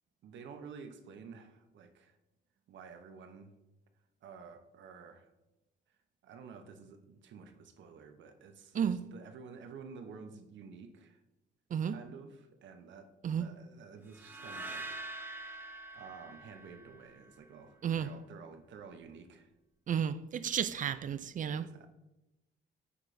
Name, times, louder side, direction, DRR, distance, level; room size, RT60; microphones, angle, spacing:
voice 1, 0.2-2.2 2.7-3.5 4.2-5.3 6.2-11.2 11.9-15.6 15.9-19.5 21.5-21.9, right 5 dB, 70° right, 0.8 m, -51 dB
voice 2, 8.7-9.1 11.7-12.0 13.2-13.5 17.8-18.1 19.9-21.7, right 8 dB, 40° right, 0.4 m, -33 dB
sound 1, 14.1-17.3, right 2 dB, 10° right, 0.7 m, -45 dB
9.6 x 3.9 x 3.3 m
cardioid pair, 90°, 20 cm